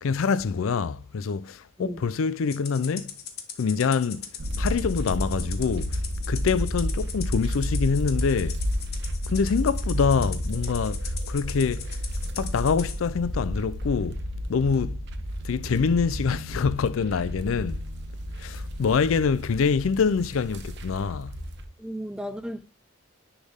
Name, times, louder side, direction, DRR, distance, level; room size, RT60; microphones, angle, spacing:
voice 1, 0.0-3.1 3.6-4.3 4.6-6.0 6.3-8.6 9.3-12.0 12.4-14.2 14.5-15.0 15.4-17.8 18.4-21.4, left 5 dB, 80° left, 0.4 m, -25 dB
Rattle (instrument), 2.5-13.0, left 8 dB, 50° left, 1.2 m, -40 dB
sound 1, 4.4-21.6, equal, 55° right, 0.8 m, -31 dB
voice 2, 21.8-22.7, equal, 5° right, 0.4 m, -34 dB
10.0 x 3.4 x 3.5 m
head